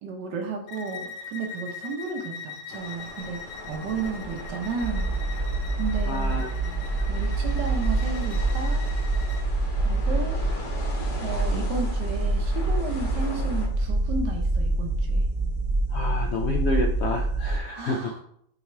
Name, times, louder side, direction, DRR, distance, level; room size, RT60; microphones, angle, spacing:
voice 1, 0.0-5.1 5.8-6.3 7.1-8.8 9.8-10.4 11.2-15.2 17.7-18.2, right 4 dB, 75° right, 1 dB, 1.7 m, -33 dB
Bowed string instrument, 0.7-9.5, left 6 dB, 65° left, 0.9 m, -42 dB
sound 1, 2.7-13.7, left 2 dB, 45° left, 1.4 m, -39 dB
sound 2, 4.8-17.6, right 2 dB, 55° right, 1.3 m, -26 dB
voice 2, 6.0-6.5 15.9-18.1, left 2 dB, 90° left, 2 dB, 0.5 m, -29 dB
6.2 x 3.6 x 4.6 m, 0.70 s
omnidirectional pair, 1.9 m